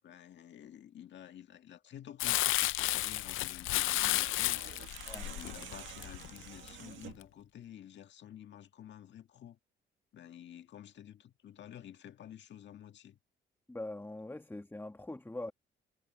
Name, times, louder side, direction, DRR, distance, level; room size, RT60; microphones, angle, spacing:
voice 1, 0.0-4.6 5.2-9.6 10.1-13.2, left 10 dB, 65° left, 1.8 m, -51 dB
Crumpling crinkling, 2.2-6.7 7.2-7.3, left 16 dB, 85° left, 0.5 m, -32 dB
sound 1, 3.7-7.3, right 11 dB, 75° right, 2.0 m, -50 dB
voice 2, 5.1-5.4 13.7-15.5, left 2 dB, 10° left, 2.0 m, -42 dB
cardioid pair, 90°, 20 cm